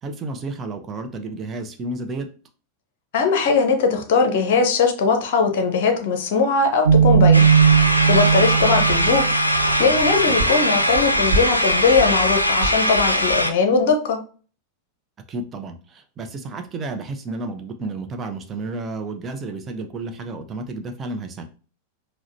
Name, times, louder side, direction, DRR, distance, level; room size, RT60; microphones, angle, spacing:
voice 1, 0.0-2.3 10.3-10.5 15.3-21.4, right 2 dB, 25° right, 6 dB, 0.6 m, -32 dB
voice 2, 3.1-7.5 7.8-14.2, left 4 dB, 50° left, 5 dB, 0.6 m, -20 dB
sound 1, 6.9-13.4, right 7 dB, 80° right, 0.6 m, -19 dB
sound 2, 7.3-13.5, equal, 85° left, 0.3 m, -21 dB
4.8 x 2.1 x 2.6 m, 0.38 s
figure-of-eight pair, 90°, 0 cm